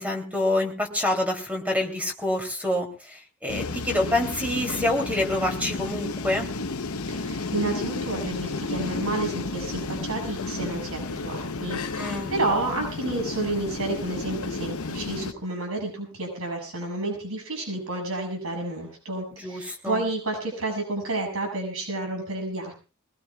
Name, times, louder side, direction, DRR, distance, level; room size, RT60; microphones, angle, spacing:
voice 1, 0.0-6.5 12.0-12.3 19.3-20.0, left 1 dB, 5° right, 2 dB, 2.9 m, -27 dB
sound 1, 3.5-15.3, left 3 dB, 85° left, 0.9 m, -32 dB
voice 2, 7.1-22.7, right 2 dB, 75° right, 1 dB, 6.8 m, -30 dB
22.0 x 19.5 x 2.4 m, 0.34 s
head